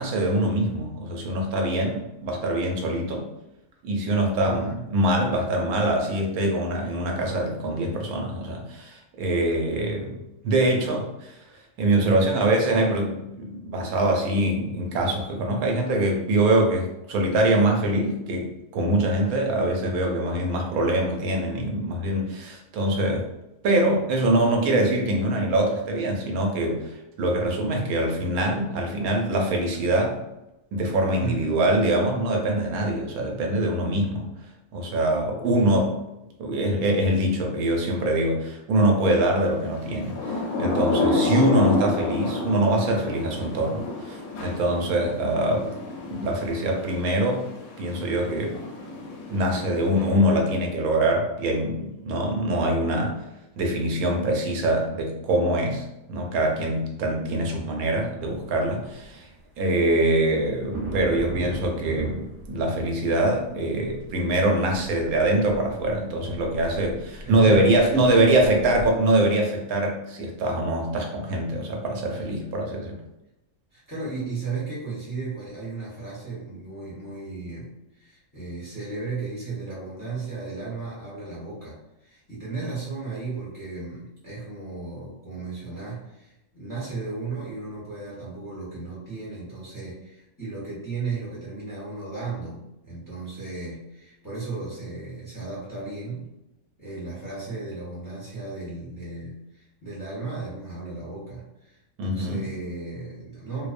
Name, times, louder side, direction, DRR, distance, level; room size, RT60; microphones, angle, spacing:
voice 1, 0.0-3.3 3.8-11.3 11.8-23.2 23.6-30.2 30.7-34.3 34.7-35.9 36.4-40.1 40.6-45.7 46.0-47.5 47.8-48.6 49.3-53.2 53.6-59.3 59.6-73.0 102.0-102.4, right 1 dB, 85° right, 1 dB, 1.0 m, -24 dB
voice 2, 4.4-4.8 11.9-12.3 31.2-31.5 33.2-33.4 45.5-45.8 67.2-68.4 73.7-96.3 96.8-103.7, right 4 dB, 20° left, -8 dB, 0.6 m, -35 dB
Thunder / Rain, 39.8-50.4, left 2 dB, 80° left, 1.0 m, -30 dB
sound 1, 58.3-58.4 58.6-68.9, right 2 dB, 55° right, 0.9 m, -38 dB
2.6 x 2.0 x 2.4 m, 0.92 s
omnidirectional pair, 1.5 m